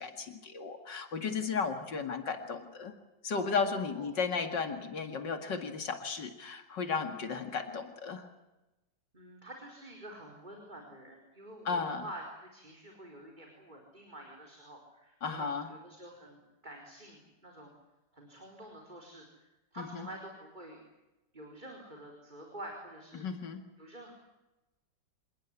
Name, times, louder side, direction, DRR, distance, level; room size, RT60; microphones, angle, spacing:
voice 1, 0.0-2.9 3.2-8.3 11.6-12.0 15.2-15.7 19.8-20.1 23.1-23.6, left 5 dB, 75° left, 6 dB, 2.8 m, -34 dB
voice 2, 1.2-1.5 3.9-4.1 9.1-17.7 18.1-19.3 19.7-20.8 21.3-23.3 23.8-24.1, right 1 dB, 25° right, 1 dB, 4.8 m, -48 dB
28.0 x 19.5 x 9.8 m, 1.0 s
omnidirectional pair, 1.9 m